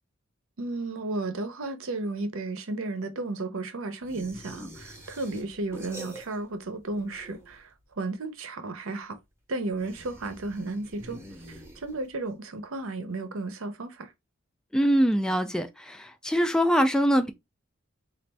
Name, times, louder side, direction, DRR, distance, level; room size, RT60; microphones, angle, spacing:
voice 1, 0.6-9.2 9.5-11.2 11.5-14.1, right 2 dB, 65° right, 0.7 m, -33 dB
sound 1, 4.1-6.6 6.9-7.7 9.7-12.2, right 1 dB, 10° right, 0.8 m, -46 dB
voice 2, 14.7-17.3, equal, 5° left, 0.3 m, -23 dB
4.1 x 2.5 x 3.3 m
head